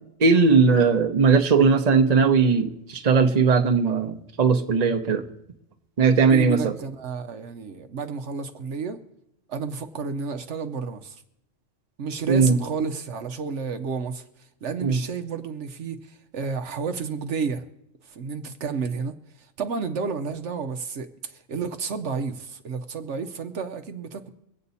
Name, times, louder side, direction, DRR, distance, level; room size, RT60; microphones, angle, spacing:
voice 1, 0.2-5.3 6.0-6.8 12.3-12.5 14.8-15.0, right 5 dB, 35° right, 0.9 m, -19 dB
voice 2, 6.2-9.0 9.5-11.2 12.0-17.6 18.0-24.3, right 5 dB, 70° right, 1.1 m, -31 dB
23.5 x 8.3 x 4.1 m
omnidirectional pair, 1.3 m